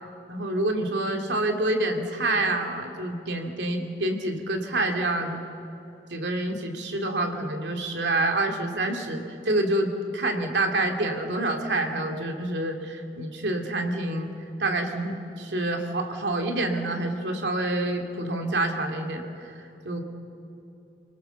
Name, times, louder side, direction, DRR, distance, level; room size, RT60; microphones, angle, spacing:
voice 1, 0.3-5.4 6.1-14.3 14.6-20.0, right 2 dB, 80° right, 4 dB, 2.5 m, -27 dB
27.0 x 20.0 x 6.9 m, 2.9 s
head